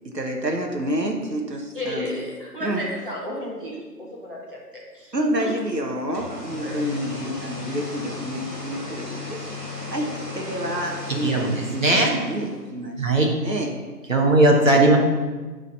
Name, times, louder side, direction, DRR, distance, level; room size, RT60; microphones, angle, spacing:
voice 1, 0.0-2.1 2.6-2.8 5.1-9.5 9.9-13.7, equal, 85° right, 1 dB, 1.3 m, -29 dB
voice 2, 1.7-4.6 4.9-5.1 5.4-5.5 6.6-6.8, equal, 35° right, -5 dB, 1.6 m, -32 dB
sound 1, 5.9-12.7, left 3 dB, 15° right, 1.9 m, -35 dB
voice 3, 11.2-12.2 13.0-13.3 14.1-15.0, right 2 dB, 50° right, 0 dB, 1.5 m, -18 dB
9.5 x 4.0 x 5.3 m, 1.4 s
figure-of-eight pair, 170°, 49 cm